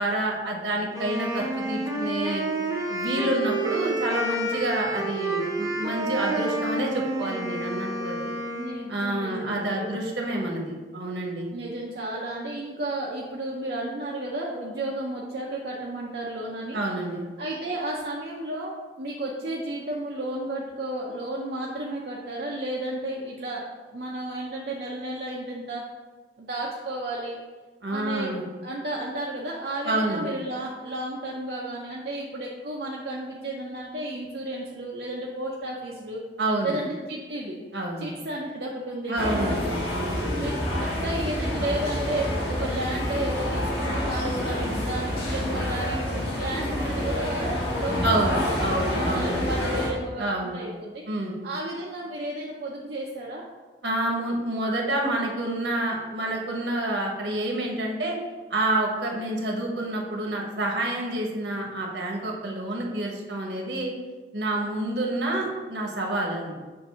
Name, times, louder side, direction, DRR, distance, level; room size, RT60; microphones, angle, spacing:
voice 1, 0.0-2.4 2.9-8.3 8.9-11.5 16.7-17.2 27.8-28.4 29.8-30.2 36.4-36.7 37.7-38.1 39.1-40.3 48.0-49.4 50.2-50.6 51.1-51.3 53.8-58.2 58.5-63.9 64.3-66.5, right 1 dB, 75° right, -1 dB, 1.3 m, -28 dB
Wind instrument woodwind instrument, 0.9-8.9, right 2 dB, 20° right, 0.8 m, -29 dB
voice 2, 8.5-9.9 11.5-16.8 17.4-25.9 26.4-27.4 27.9-28.4 28.6-36.2 36.6-37.6 38.0-39.8 40.3-48.0 48.3-51.0 51.4-53.4, right 1 dB, 55° right, -3 dB, 0.6 m, -33 dB
sound 1, 39.2-49.9, left 1 dB, 55° left, 1.4 m, -28 dB
6.9 x 2.7 x 5.5 m, 1.3 s
head